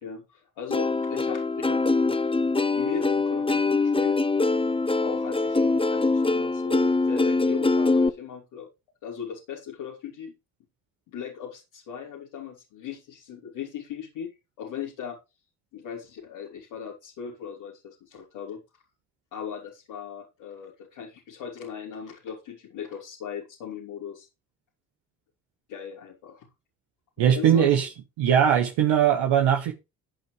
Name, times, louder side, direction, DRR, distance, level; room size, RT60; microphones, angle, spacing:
voice 1, 0.0-1.8 2.5-4.2 5.0-8.7 9.0-10.3 11.1-15.2 15.7-18.6 19.3-24.3 25.7-26.5 27.3-27.7, left 7 dB, 75° left, 3.3 m, -38 dB
Plucked string instrument, 0.7-8.1, left 3 dB, 10° left, 1.0 m, -23 dB
voice 2, 27.2-27.9 28.2-29.7, right 9 dB, 70° right, 1.5 m, -20 dB
15.0 x 8.3 x 3.3 m
hypercardioid pair, 45°, 45 cm